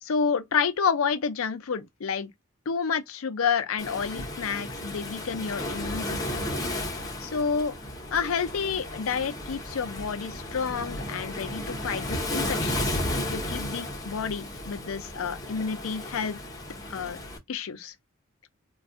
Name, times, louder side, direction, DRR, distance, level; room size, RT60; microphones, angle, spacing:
voice 1, 0.0-2.3 2.7-6.4 7.2-7.8 8.1-13.0 13.3-16.4 16.9-17.2 17.5-17.9, left 6 dB, 85° left, 0.5 m, -29 dB
Waves surf, 3.8-17.4, left 1 dB, 15° left, 0.7 m, -34 dB
2.4 x 2.3 x 3.4 m
head